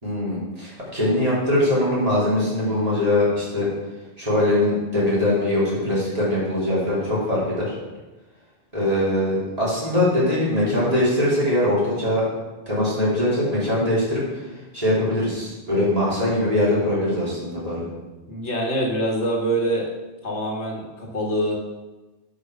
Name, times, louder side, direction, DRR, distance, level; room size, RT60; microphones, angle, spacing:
voice 1, 0.0-3.7 4.2-7.7 8.7-12.2 12.7-14.4 14.7-17.9, left 1 dB, 35° right, -8 dB, 3.6 m, -22 dB
voice 2, 18.3-19.9 20.2-21.5, right 1 dB, 80° left, -1 dB, 1.9 m, -25 dB
7.8 x 5.3 x 6.4 m, 1.1 s
omnidirectional pair, 1.2 m